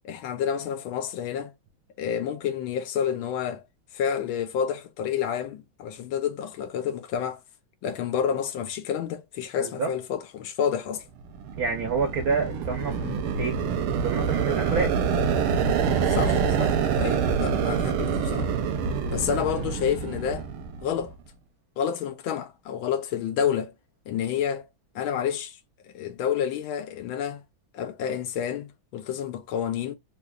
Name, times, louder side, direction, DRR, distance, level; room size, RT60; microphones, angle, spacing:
voice 1, 0.0-1.5 2.0-3.6 3.9-7.4 7.8-11.0 13.0-13.2 16.1-18.5 19.1-20.5 20.8-21.1 21.8-23.7 24.1-24.7 24.9-25.6 25.9-27.4 27.7-30.0, left 8 dB, 75° left, 1.3 m, -29 dB
voice 2, 9.6-9.9 11.5-13.0 13.3-13.6 14.0-14.9, right 5 dB, 60° right, 0.9 m, -27 dB
sound 1, 11.3-21.1, right 6 dB, 85° right, 1.6 m, -26 dB
3.8 x 2.8 x 2.3 m
omnidirectional pair, 2.4 m